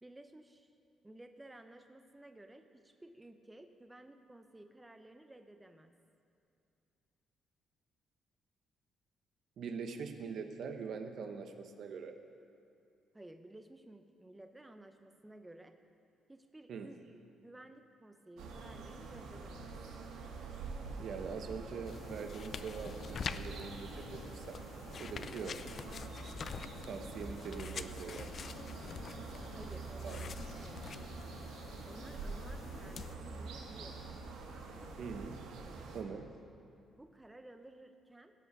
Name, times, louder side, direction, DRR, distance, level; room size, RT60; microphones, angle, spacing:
voice 1, 0.0-0.7 1.0-5.9 13.1-15.7 16.3-17.0 17.4-19.7 29.5-30.9 31.9-34.1 34.7-35.1 35.6-36.3 37.0-38.3, right 1 dB, 15° right, 7 dB, 0.6 m, -55 dB
voice 2, 9.6-12.1 16.7-16.9 21.0-24.6 24.9-25.6 26.8-28.4 30.0-30.2 35.0-35.4 35.9-36.3, right 5 dB, 65° right, 6 dB, 0.8 m, -43 dB
sound 1, 18.4-36.0, right 4 dB, 90° right, 1.1 m, -46 dB
sound 2, 21.9-33.2, left 6 dB, 50° left, 0.4 m, -46 dB
sound 3, 26.2-33.8, left 3 dB, 75° left, 1.0 m, -59 dB
16.0 x 5.5 x 6.0 m, 2.6 s
cardioid pair, 90°, 0 cm